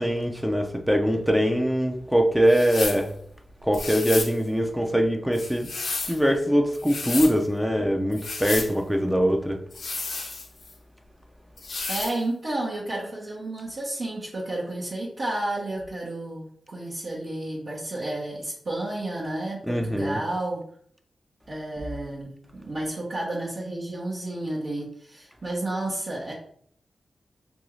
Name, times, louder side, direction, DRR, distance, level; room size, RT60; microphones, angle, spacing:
voice 1, 0.0-3.1 3.6-5.7 6.1-9.6 19.7-20.2, equal, 5° right, 0.4 m, -23 dB
sound 1, 2.5-3.0 3.7-4.4 5.3-6.2 6.7-7.3 8.1-8.7 9.7-10.7 11.6-12.2, left 3 dB, 70° left, 0.5 m, -32 dB
voice 2, 11.9-20.6 21.5-26.3, right 1 dB, 60° right, 0.8 m, -31 dB
2.6 x 2.3 x 3.0 m
cardioid pair, 70°, 0 cm